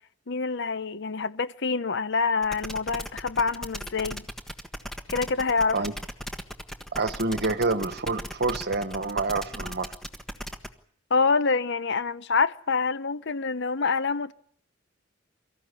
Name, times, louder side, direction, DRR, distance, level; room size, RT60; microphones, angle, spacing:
voice 1, 0.3-4.3 5.1-5.8 11.1-14.3, left 4 dB, 60° left, 0.9 m, -26 dB
sound 1, 2.4-10.7, equal, ahead, 1.4 m, -37 dB
voice 2, 6.9-9.9, right 3 dB, 55° right, 1.4 m, -27 dB
24.5 x 14.5 x 9.8 m
head